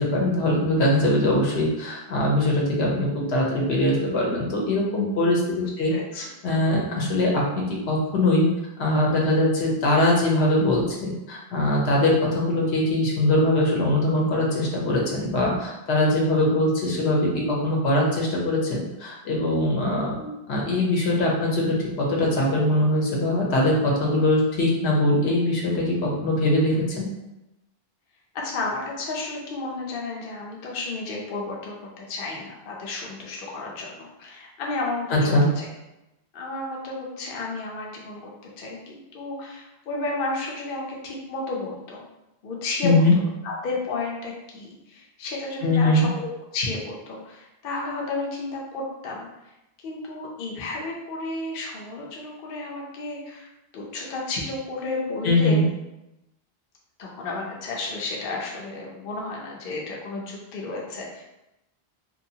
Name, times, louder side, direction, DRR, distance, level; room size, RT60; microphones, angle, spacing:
voice 1, 0.0-8.5 8.8-20.1 20.5-27.1 35.1-35.5 42.8-43.1 45.6-46.1 55.2-55.6, left 1 dB, 85° left, -3 dB, 1.0 m, -22 dB
voice 2, 5.6-6.3 20.2-20.3 26.7-26.8 28.3-35.7 36.3-42.1 42.4-43.0 43.4-49.3 49.8-55.6 57.0-61.2, left 3 dB, 65° left, -2 dB, 0.7 m, -32 dB
2.7 x 2.3 x 2.7 m, 0.93 s
omnidirectional pair, 1.1 m